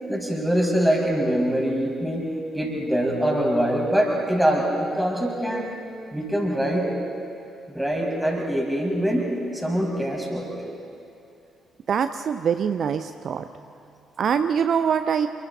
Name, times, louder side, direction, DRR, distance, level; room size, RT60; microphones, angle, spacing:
voice 1, 0.1-2.3 2.5-5.7 6.1-6.9 7.7-9.3 9.5-10.5, equal, 5° right, -1 dB, 5.5 m, -23 dB
voice 2, 11.9-13.4 14.2-15.3, right 7 dB, 50° right, 10 dB, 0.5 m, -23 dB
28.5 x 22.5 x 4.1 m, 2.6 s
figure-of-eight pair, 40°, 0 cm